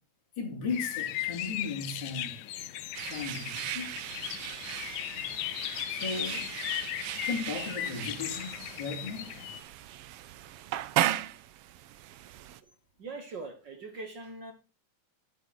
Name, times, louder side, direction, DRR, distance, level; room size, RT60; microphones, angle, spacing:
voice 1, 0.4-2.4 3.0-3.9 5.9-6.5 7.1-9.3, left 4 dB, 40° left, 3.2 m, -36 dB
sound 1, 0.7-9.6, left 13 dB, 85° left, 2.1 m, -37 dB
sound 2, 2.9-12.6, right 13 dB, 90° right, 1.3 m, -36 dB
voice 2, 13.0-14.5, right 3 dB, 50° right, 1.4 m, -42 dB
11.5 x 8.0 x 4.2 m
omnidirectional pair, 3.4 m